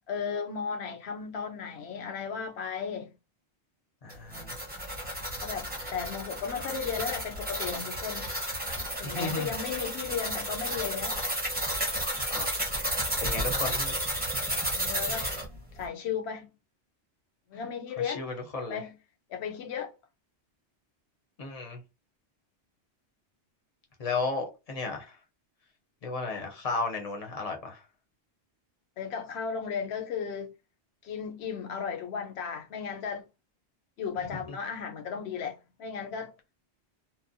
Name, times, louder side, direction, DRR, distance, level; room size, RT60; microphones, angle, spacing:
voice 1, 0.1-3.1 5.4-8.3 9.0-11.2 14.7-15.3 15.8-16.5 17.5-18.2 18.7-19.0 19.3-19.9 29.0-30.5 31.0-33.2 34.0-36.3, left 6 dB, 70° left, 0.8 m, -35 dB
voice 2, 4.0-4.6 9.0-9.5 12.3-12.5 13.2-13.9 18.0-18.8 21.4-21.8 24.0-25.2 26.0-27.8, left 3 dB, 40° left, 0.6 m, -34 dB
sound 1, 4.1-15.5, right 1 dB, 10° right, 0.7 m, -32 dB
2.9 x 2.1 x 2.6 m
omnidirectional pair, 1.2 m